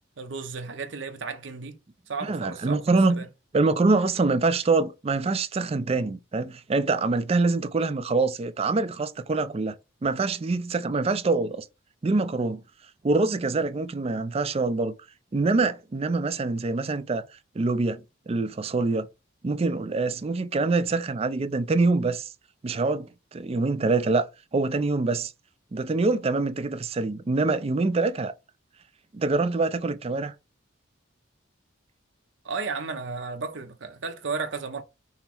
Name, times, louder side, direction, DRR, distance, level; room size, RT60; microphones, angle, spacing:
voice 1, 0.2-1.8 2.1-3.3 32.4-34.8, right 4 dB, 65° right, 0.7 m, -34 dB
voice 2, 2.2-3.2 3.5-9.7 10.0-11.7 12.0-12.6 13.0-14.9 15.3-17.2 17.6-19.1 19.4-22.3 22.6-24.3 24.5-25.3 25.7-28.3 29.1-30.3, right 3 dB, 30° right, 0.4 m, -25 dB
5.6 x 2.0 x 4.4 m
head